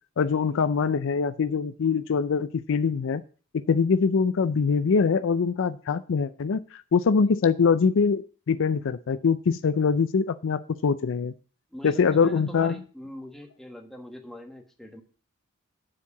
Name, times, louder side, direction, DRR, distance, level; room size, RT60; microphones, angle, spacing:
voice 1, 0.2-3.2 3.7-11.3 11.8-12.8, left 5 dB, 60° left, 13 dB, 0.4 m, -23 dB
voice 2, 11.7-15.0, left 1 dB, ahead, 2 dB, 1.4 m, -42 dB
9.9 x 4.7 x 7.0 m, 0.39 s
head